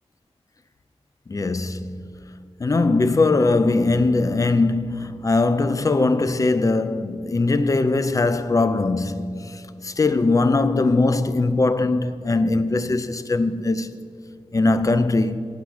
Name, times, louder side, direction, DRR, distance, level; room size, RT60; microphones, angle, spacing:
voice 1, 1.3-2.1 2.6-13.9 14.5-15.4, left 3 dB, 30° left, 0.4 m, -21 dB
8.6 x 5.7 x 7.8 m
wide cardioid pair, 100°, 11 cm